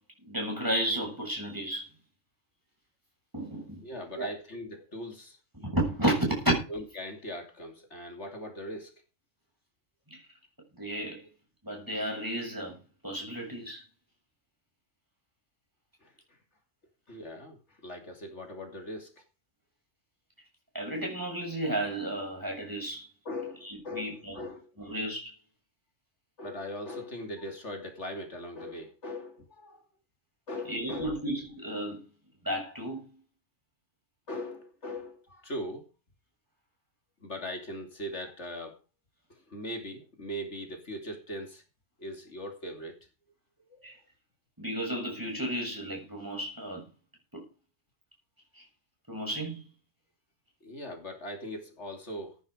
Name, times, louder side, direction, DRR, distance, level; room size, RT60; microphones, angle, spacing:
voice 1, 0.2-1.9 3.3-3.9 4.1-4.3 5.5-6.5 10.1-10.2 10.7-11.2 11.6-12.8 13.0-13.8 20.7-23.1 23.6-24.5 24.8-25.3 30.7-32.0 32.4-33.2 43.8-43.9 44.6-46.8 47.3-47.4 48.5-48.6 49.1-49.6, right 1 dB, 15° right, 7.3 m, -32 dB
voice 2, 3.8-5.4 6.7-9.0 16.0-16.1 17.1-19.2 23.2-24.9 26.4-29.8 30.5-31.2 34.3-35.9 37.2-38.8 39.3-41.6 42.0-43.0 43.7-43.8 50.6-52.4, left 1 dB, 65° left, 3.1 m, -40 dB
15.0 x 9.7 x 5.2 m
omnidirectional pair, 1.3 m